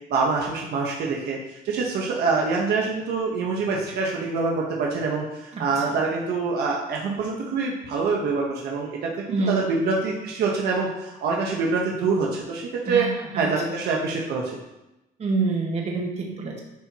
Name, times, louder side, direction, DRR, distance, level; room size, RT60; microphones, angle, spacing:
voice 1, 0.1-1.4 1.6-9.1 9.5-13.1 13.4-14.6, right 4 dB, 70° right, -2 dB, 1.2 m, -25 dB
voice 2, 5.5-5.9 9.3-9.6 12.8-13.1 13.3-13.5 15.2-16.6, right 3 dB, 40° right, -1 dB, 1.7 m, -26 dB
11.0 x 4.5 x 3.0 m, 0.95 s
cardioid pair, 110°, 17 cm